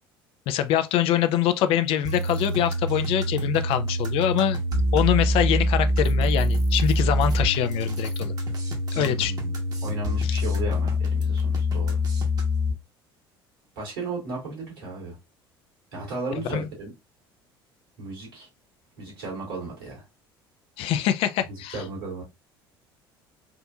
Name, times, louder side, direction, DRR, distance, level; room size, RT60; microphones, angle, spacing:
voice 1, 0.5-4.6 4.9-8.3 8.9-9.3 10.2-10.4 16.5-16.7 20.8-21.8, left 11 dB, 50° left, 0.3 m, -24 dB
sound 1, 2.0-12.7, left 1 dB, 30° right, 0.9 m, -25 dB
voice 2, 8.9-9.5 9.8-12.0 13.8-15.2 15.9-16.9 18.0-18.5 19.0-20.0 21.5-22.2, right 3 dB, 70° right, 1.9 m, -35 dB
3.6 x 2.6 x 2.3 m
figure-of-eight pair, 60°, 13 cm